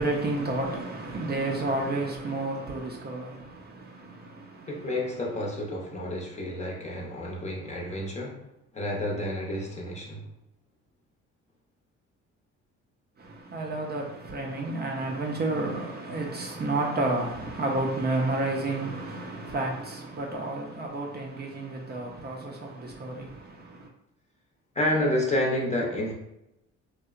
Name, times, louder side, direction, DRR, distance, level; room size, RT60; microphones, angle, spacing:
voice 1, 0.0-4.9 13.2-23.9, right 2 dB, 35° right, 0.4 m, -31 dB
voice 2, 4.7-8.4 8.7-10.3 24.7-26.1, left 1 dB, 25° left, 0.6 m, -29 dB
2.7 x 2.1 x 2.4 m
cardioid pair, 90°, 30 cm